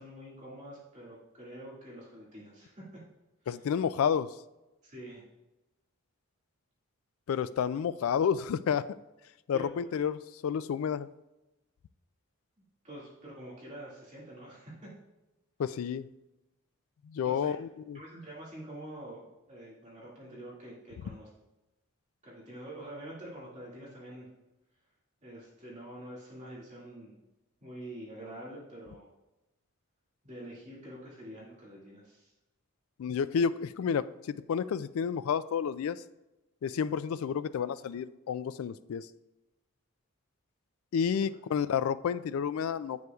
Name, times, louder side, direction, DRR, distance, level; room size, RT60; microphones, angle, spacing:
voice 1, 0.0-3.0 3.6-3.7 4.8-5.2 9.5-9.7 12.8-14.9 17.2-17.5 17.9-21.3 22.2-24.3 25.2-27.2 27.6-29.1 30.2-32.3, right 1 dB, 35° right, -7 dB, 2.1 m, -46 dB
voice 2, 3.5-4.3 7.3-9.0 9.5-11.1 15.6-16.1 17.1-18.0 33.0-36.0 36.6-39.1 40.9-43.0, left 7 dB, 75° left, 16 dB, 0.3 m, -30 dB
9.5 x 7.7 x 2.4 m, 0.99 s
head